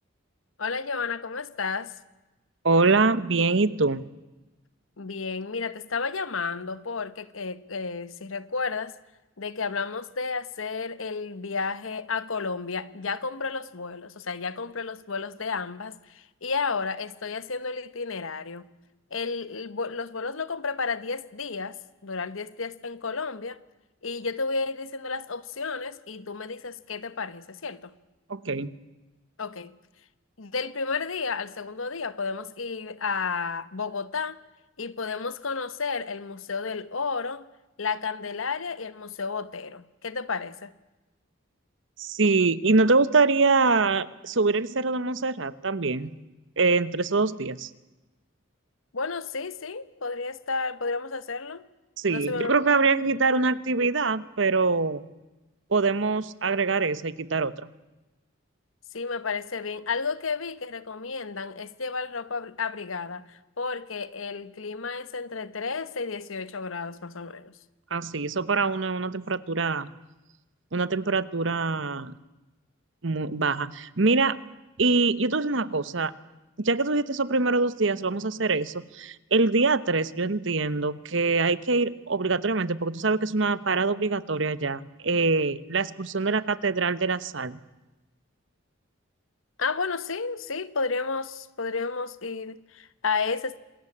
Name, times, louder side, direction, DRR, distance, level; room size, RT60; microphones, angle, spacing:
voice 1, 0.6-1.9 5.0-8.9 9.4-18.7 19.1-23.6 24.0-27.9 29.4-29.7 30.4-34.4 34.8-37.4 37.8-40.7 48.9-51.6 52.1-52.5 58.9-63.3 63.6-67.5 89.6-93.6, left 4 dB, 85° left, 1.2 m, -32 dB
voice 2, 2.6-4.1 28.3-28.7 42.0-46.1 46.6-47.7 52.0-55.1 55.7-57.7 67.9-69.9 70.7-72.1 73.0-74.4 74.8-76.1 76.6-87.6, right 3 dB, 65° right, 1.0 m, -24 dB
27.0 x 20.5 x 8.7 m
head